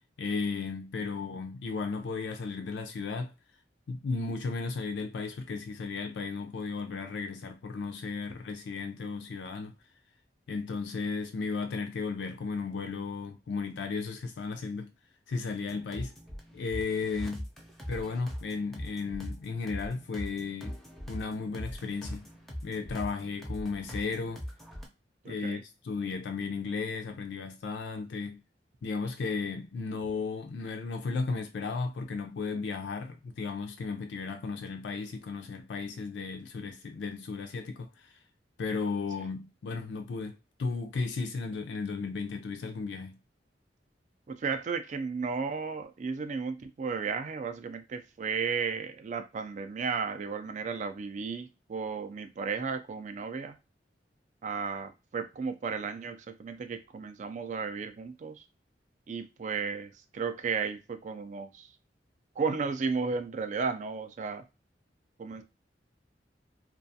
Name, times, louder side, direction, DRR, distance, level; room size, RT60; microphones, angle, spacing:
voice 1, 0.2-3.3 3.9-9.7 10.5-14.9 15.3-16.1 16.5-17.4 17.9-20.8 21.1-22.3 22.6-24.4 25.2-28.4 28.8-38.2 38.6-43.2, left 4 dB, 75° left, 0.4 m, -35 dB
sound 1, 15.7-24.9, equal, ahead, 0.6 m, -41 dB
voice 2, 25.2-25.6 44.3-53.5 54.4-58.4 59.1-61.7 62.4-64.4 65.2-65.4, right 5 dB, 45° right, 0.4 m, -34 dB
2.3 x 2.3 x 2.6 m
head